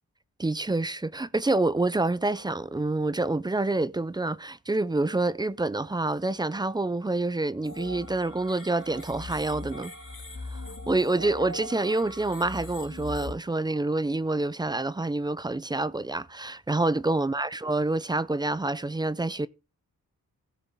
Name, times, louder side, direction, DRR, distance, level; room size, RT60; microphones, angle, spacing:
voice 1, 0.4-9.9 10.5-10.6 10.9-19.5, right 2 dB, 15° right, 0.4 m, -27 dB
sound 1, 7.6-13.3, left 2 dB, 40° left, 3.3 m, -40 dB
16.5 x 6.8 x 3.6 m
wide cardioid pair, 125°, 33 cm